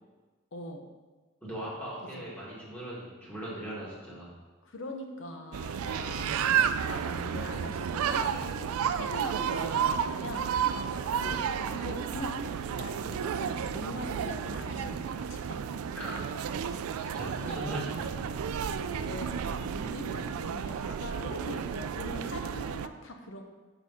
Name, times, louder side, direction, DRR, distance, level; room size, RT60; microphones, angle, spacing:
voice 1, 0.5-0.9 2.2-2.3 4.6-10.5 11.2-11.4 11.6-12.5 12.8-15.8 17.4-17.7 19.0-23.4, left 1 dB, 60° left, 3 dB, 0.8 m, -42 dB
voice 2, 1.4-4.4 15.9-18.1, right 1 dB, 5° left, -8 dB, 2.0 m, -40 dB
sound 1, 5.5-22.9, right 7 dB, 90° right, 0.3 m, -32 dB
6.4 x 5.6 x 4.2 m, 1.3 s
head